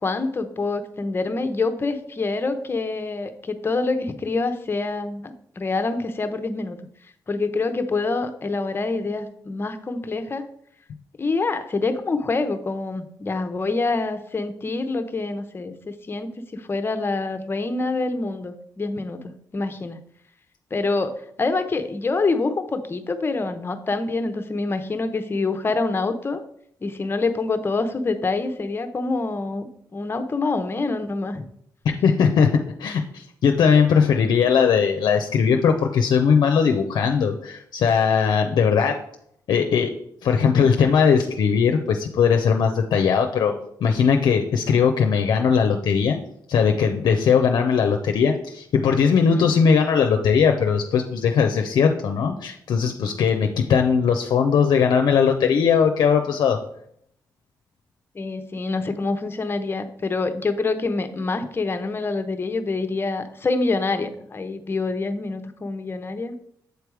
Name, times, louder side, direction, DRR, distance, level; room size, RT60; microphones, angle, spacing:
voice 1, 0.0-6.8 7.3-10.4 11.2-20.0 20.7-26.4 26.8-31.4 34.4-34.5 49.3-49.5 58.1-66.4, left 3 dB, 30° left, 8 dB, 0.8 m, -26 dB
voice 2, 32.0-32.5 32.8-39.0 39.5-39.9 40.2-43.5 43.8-46.2 46.5-56.6, left 6 dB, 75° left, 4 dB, 0.6 m, -19 dB
8.0 x 3.4 x 4.7 m, 0.68 s
cardioid pair, 85°, 7 cm